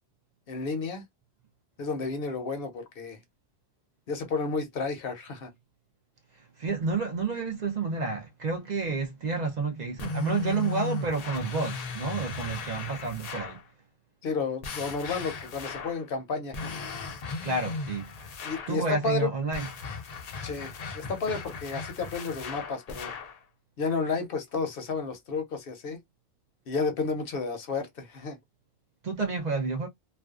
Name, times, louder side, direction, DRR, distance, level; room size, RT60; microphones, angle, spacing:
voice 1, 0.5-1.0 1.8-3.2 4.1-5.5 14.2-16.8 18.4-19.3 20.4-23.1 23.8-26.0 26.7-28.4, left 4 dB, 65° left, 0.8 m, -31 dB
voice 2, 6.6-13.6 17.4-18.1 18.7-19.7 29.0-29.9, right 4 dB, 55° right, 0.6 m, -30 dB
sound 1, 10.0-13.6 14.6-16.0 16.5-18.8 19.5-23.4, left 4 dB, 50° left, 0.5 m, -37 dB
2.5 x 2.2 x 2.3 m
omnidirectional pair, 1.0 m